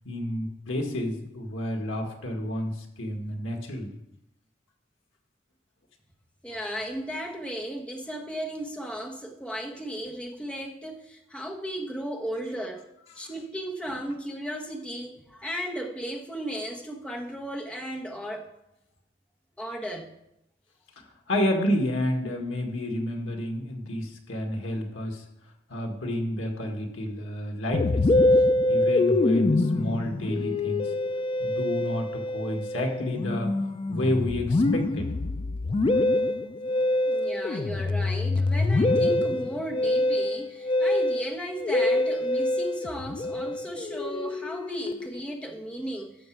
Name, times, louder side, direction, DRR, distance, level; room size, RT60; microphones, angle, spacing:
voice 1, 0.1-3.9 13.2-13.3 21.3-25.2 25.7-28.1 28.7-30.9 31.4-33.5 33.9-35.1, left 1 dB, 85° left, 1.8 m, -30 dB
voice 2, 6.4-12.9 13.2-18.5 19.6-20.1 37.0-46.1, equal, 5° left, 1.2 m, -35 dB
Musical instrument, 27.7-45.3, left 2 dB, 25° left, 0.3 m, -25 dB
12.0 x 6.2 x 4.7 m
head